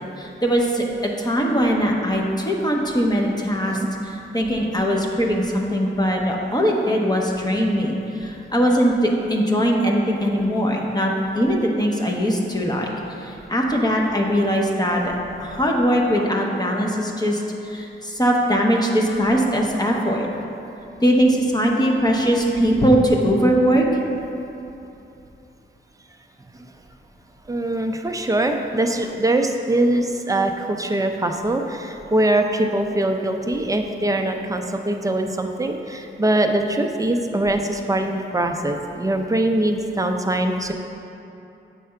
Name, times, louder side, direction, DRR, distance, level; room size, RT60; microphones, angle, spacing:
voice 1, 0.2-0.9 1.2-12.9 13.2-15.1 15.4-20.3 21.0-23.8, equal, 20° left, -1 dB, 0.7 m, -21 dB
voice 2, 27.5-40.7, right 1 dB, 15° right, 4 dB, 0.4 m, -22 dB
7.5 x 3.3 x 5.6 m, 2.9 s
wide cardioid pair, 85°, 20 cm